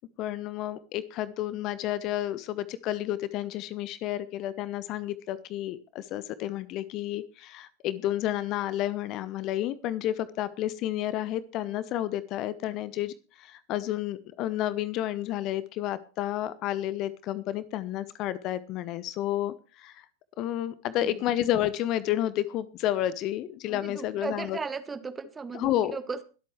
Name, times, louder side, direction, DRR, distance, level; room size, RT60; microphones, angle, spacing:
voice 1, 0.2-20.0 20.4-24.6 25.5-26.0, left 13 dB, 40° left, 17 dB, 0.8 m, -31 dB
voice 2, 23.7-26.2, right 4 dB, 15° right, 11 dB, 1.3 m, -36 dB
22.0 x 8.5 x 3.2 m, 0.35 s
figure-of-eight pair, 90°, 0 cm